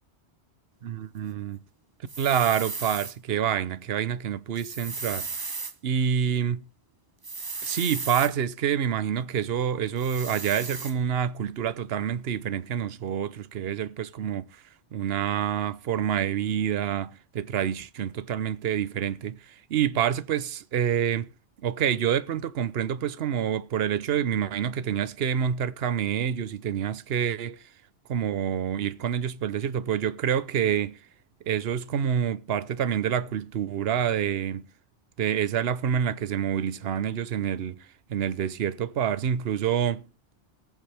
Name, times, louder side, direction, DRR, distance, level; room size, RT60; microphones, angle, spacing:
voice 1, 0.8-1.6 2.2-5.3 5.8-6.6 7.6-14.5 14.9-19.4 19.7-21.3 21.6-27.6 28.1-31.0 31.5-34.7 35.2-37.8 38.1-40.1, right 9 dB, 60° right, 1.0 m, -27 dB
sound 1, 2.1-3.1 4.6-5.7 7.2-8.3 10.0-10.9, right 4 dB, 25° right, 0.5 m, -35 dB
20.5 x 7.2 x 3.4 m
omnidirectional pair, 1.2 m